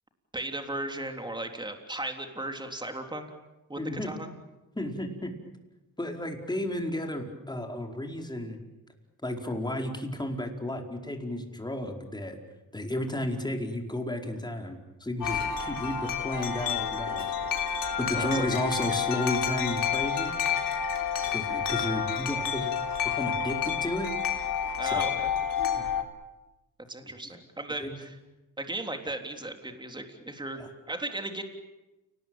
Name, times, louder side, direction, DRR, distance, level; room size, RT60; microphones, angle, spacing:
voice 1, 0.3-3.3 3.7-4.3 18.1-18.5 24.8-25.3 26.9-28.1 28.6-30.6 30.9-31.4, right 1 dB, 15° right, 5 dB, 3.6 m, -36 dB
voice 2, 3.8-4.1 4.7-5.3 6.0-8.6 9.2-12.4 12.7-17.3 18.0-20.3 21.2-22.7 23.2-24.1 24.8-25.1 25.8-25.9 27.8-27.9 30.5-30.7, left 1 dB, 10° left, 2 dB, 4.7 m, -33 dB
Wind chime, 15.2-26.0, left 7 dB, 75° left, 3.6 m, -29 dB
30.0 x 19.5 x 9.0 m, 1.0 s
cardioid pair, 85°, 34 cm